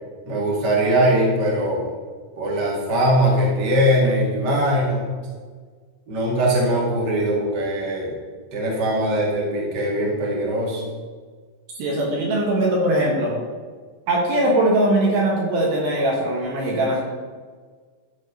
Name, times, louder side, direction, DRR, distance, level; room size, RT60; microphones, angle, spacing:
voice 1, 0.3-1.8 2.3-5.0 6.1-8.1 8.5-10.8, right 1 dB, 40° right, -3 dB, 1.7 m, -21 dB
voice 2, 11.8-13.4 14.1-17.0, right 1 dB, 65° right, -2 dB, 2.9 m, -20 dB
13.0 x 4.6 x 5.5 m, 1.5 s
omnidirectional pair, 5.3 m